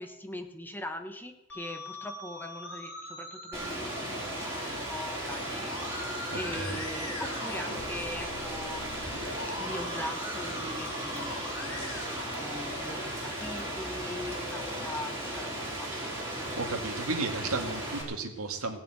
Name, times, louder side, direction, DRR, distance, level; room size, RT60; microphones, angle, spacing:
voice 1, 0.0-9.2 9.6-15.9, left 1 dB, 10° left, 5 dB, 1.3 m, -41 dB
Musical instrument, 1.5-13.4, left 1 dB, 60° left, 5.6 m, -42 dB
Rain, 3.5-18.0, right 1 dB, 10° right, 4.4 m, -36 dB
voice 2, 6.3-6.8 16.6-18.8, right 3 dB, 70° right, 3 dB, 2.2 m, -34 dB
17.0 x 7.3 x 8.9 m, 0.93 s
head